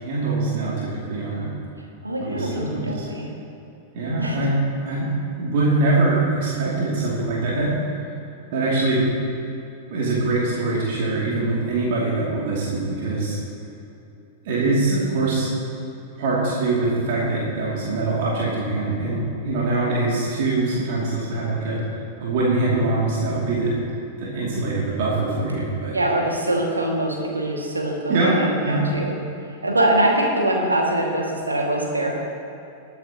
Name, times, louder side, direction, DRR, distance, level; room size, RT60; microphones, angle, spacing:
voice 1, 0.0-1.5 2.2-3.1 3.9-7.7 8.5-9.1 9.9-13.4 14.4-15.5 16.2-21.8 22.2-23.8 24.2-26.0 28.1-28.9, right 2 dB, 50° right, -6 dB, 2.8 m, -23 dB
voice 2, 2.0-3.3 4.2-4.4 25.9-29.1 29.6-32.1, right 1 dB, 80° right, -1 dB, 2.2 m, -23 dB
20.5 x 9.0 x 3.0 m, 2.8 s
figure-of-eight pair, 95°, 0 cm